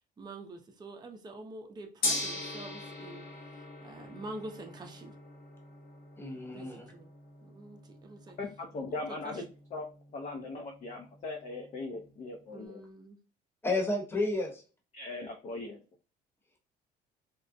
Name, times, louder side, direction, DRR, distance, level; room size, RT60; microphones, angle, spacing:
voice 1, 0.2-3.3 3.8-5.1 6.5-7.1 7.4-8.4 8.9-9.0 9.2-9.3 12.5-13.2, right 2 dB, 25° right, 0.5 m, -46 dB
Gong, 2.0-12.2, left 2 dB, 60° left, 1.0 m, -41 dB
voice 2, 6.2-6.9 13.6-14.6, left 2 dB, 15° left, 0.9 m, -31 dB
voice 3, 8.4-9.4 9.7-9.9 10.1-12.8 14.9-15.8, left 3 dB, 45° left, 0.5 m, -39 dB
3.6 x 2.0 x 2.6 m
cardioid pair, 110°, 17 cm